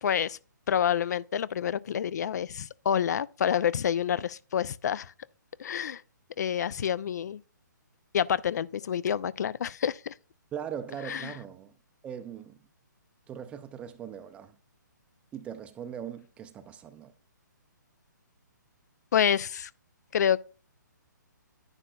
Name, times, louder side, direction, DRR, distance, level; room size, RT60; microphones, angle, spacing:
voice 1, 0.0-0.4 0.7-5.1 5.6-6.0 6.4-7.4 8.1-10.1 11.1-11.3 19.1-19.7 20.1-20.4, left 9 dB, 60° left, 0.5 m, -28 dB
voice 2, 10.5-11.7 12.0-12.6 13.3-14.6 15.3-17.1, right 8 dB, 10° right, 0.5 m, -40 dB
10.5 x 9.8 x 2.3 m
hypercardioid pair, 150°, 11 cm